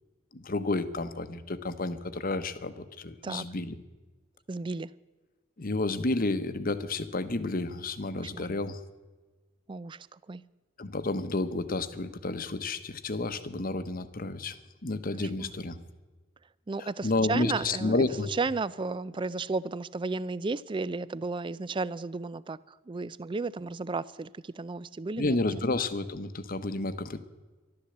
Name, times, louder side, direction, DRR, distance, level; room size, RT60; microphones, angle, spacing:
voice 1, 0.3-3.8 5.6-8.8 10.8-14.6 14.8-15.8 16.8-18.3 25.2-27.2, left 2 dB, 45° left, 11 dB, 1.0 m, -31 dB
voice 2, 4.5-4.9 8.2-8.5 9.7-10.4 15.2-15.5 16.7-22.6 22.9-25.7, right 3 dB, 25° right, 19 dB, 0.4 m, -34 dB
13.5 x 12.5 x 7.9 m, 1.2 s
head